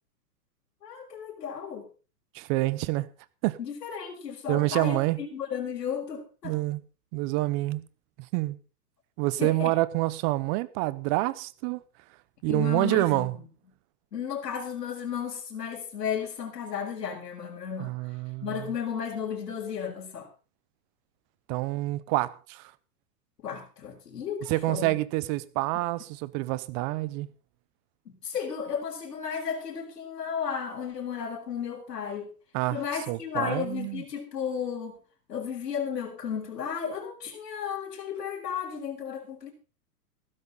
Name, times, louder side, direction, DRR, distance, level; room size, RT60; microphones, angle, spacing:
voice 1, 0.8-1.9 3.6-6.6 9.4-9.7 12.5-13.5 14.1-17.9 18.4-20.3 23.4-25.0 28.1-32.3 32.7-35.0 35.3-39.5, left 7 dB, 85° left, 4.6 m, -34 dB
voice 2, 2.3-3.1 3.4-3.6 4.5-5.2 6.4-6.8 7.1-7.8 8.3-8.6 9.2-11.8 12.4-13.4 17.8-18.8 21.5-22.7 24.5-27.3 32.5-34.0, right 19 dB, 30° right, 0.8 m, -27 dB
15.5 x 13.0 x 3.9 m
hypercardioid pair, 140°, 48 cm